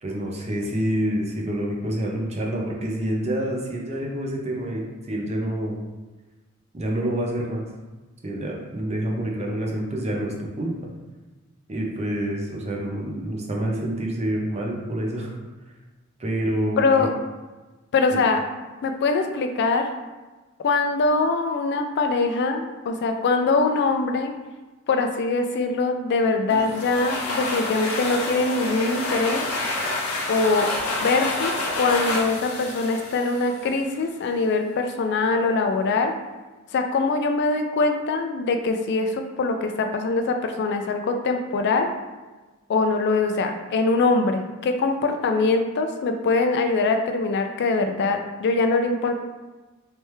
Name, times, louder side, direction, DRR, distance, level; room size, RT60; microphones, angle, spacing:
voice 1, 0.0-5.8 6.7-7.7 8.2-10.8 11.7-15.4 16.2-17.1 18.1-18.2, right 1 dB, 30° right, -1 dB, 0.7 m, -27 dB
voice 2, 16.8-17.1 17.9-18.4 18.8-19.9 20.6-24.3 24.9-29.4 30.3-36.2 36.7-41.9 42.7-49.2, left 3 dB, 55° left, 6 dB, 0.3 m, -23 dB
sound 1, 26.5-34.0, left 2 dB, 85° left, 0.7 m, -28 dB
3.3 x 3.3 x 3.1 m, 1.2 s
head